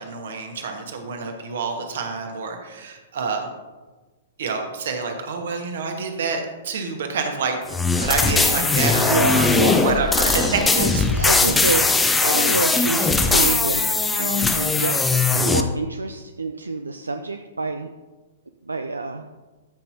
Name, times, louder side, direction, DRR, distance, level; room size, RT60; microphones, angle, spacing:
voice 1, 0.0-3.5 4.4-7.6 7.9-11.4, right 4 dB, 55° right, 4 dB, 1.4 m, -27 dB
sound 1, 7.7-15.6, left 3 dB, 10° left, 0.5 m, -20 dB
voice 2, 9.1-9.8 10.8-13.8 14.2-14.9 15.3-17.9 18.6-19.3, right 3 dB, 80° right, 7 dB, 0.4 m, -27 dB
13.0 x 5.7 x 2.8 m, 1.2 s
figure-of-eight pair, 110°, 0 cm